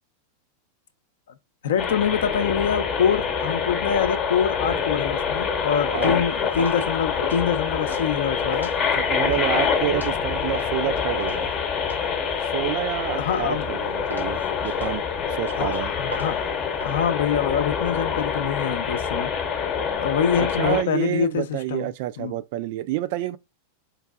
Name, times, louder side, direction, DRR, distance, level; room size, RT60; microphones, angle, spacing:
voice 1, 1.6-8.8 13.2-13.7 15.6-16.4 16.8-19.3 19.7-21.9 22.2-22.4, left 7 dB, 60° left, 0.5 m, -25 dB
sound 1, 1.8-20.8, left 6 dB, 30° left, 0.8 m, -26 dB
sound 2, 5.6-10.8 11.2-13.0 13.3-13.7 14.1-16.9, equal, 85° right, 1.0 m, -38 dB
voice 2, 5.9-6.2 8.8-11.5 12.4-15.0 15.3-15.9 19.8-20.0 20.4-23.4, right 14 dB, 50° right, 0.3 m, -28 dB
4.6 x 2.6 x 2.2 m
figure-of-eight pair, 90°, 0 cm